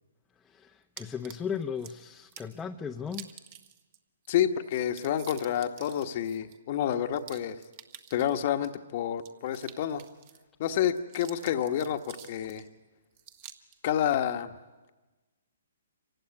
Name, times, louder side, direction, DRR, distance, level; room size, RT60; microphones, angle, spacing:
voice 1, 0.4-3.3, left 7 dB, 10° left, 2 dB, 0.8 m, -36 dB
sound 1, 1.0-1.9 2.3-2.6 3.1-4.0 4.2-4.3 4.6-8.7 9.2-10.4 10.8-12.7 13.2-13.8, right 10 dB, 40° right, 1.7 m, -49 dB
voice 2, 4.3-7.6 8.1-10.0 10.6-12.6 13.8-14.5, left 10 dB, 45° left, 8 dB, 1.2 m, -29 dB
26.0 x 16.0 x 9.6 m, 1.2 s
hypercardioid pair, 145°, 0 cm